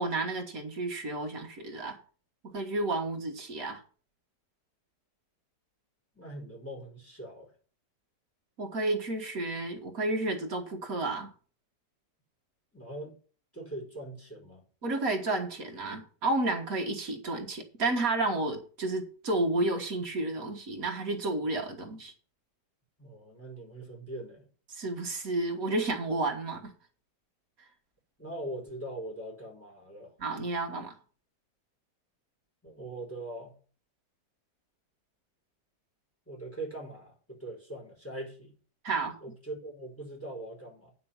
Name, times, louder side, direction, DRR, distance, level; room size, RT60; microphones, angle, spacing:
voice 1, 0.0-2.0 2.4-3.8 8.6-11.3 14.8-22.1 24.8-26.7 30.2-30.9 38.8-39.2, right 2 dB, 55° right, 4 dB, 1.9 m, -31 dB
voice 2, 6.1-7.5 12.7-13.2 13.5-14.7 23.0-24.5 28.2-30.1 32.6-33.5 36.3-38.5 39.2-40.9, right 1 dB, 5° left, -1 dB, 5.0 m, -41 dB
9.5 x 5.9 x 7.3 m, 0.41 s
omnidirectional pair, 1.9 m